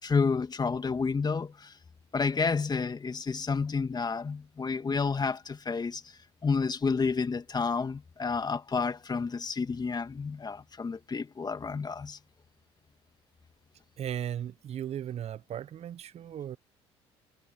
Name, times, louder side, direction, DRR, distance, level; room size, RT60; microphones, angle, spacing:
voice 1, 0.0-1.7 2.1-6.0 6.4-12.2, left 5 dB, 30° left, 2.3 m, -30 dB
voice 2, 14.0-16.6, right 10 dB, 45° right, 1.2 m, -36 dB
hypercardioid pair, 55°, 15 cm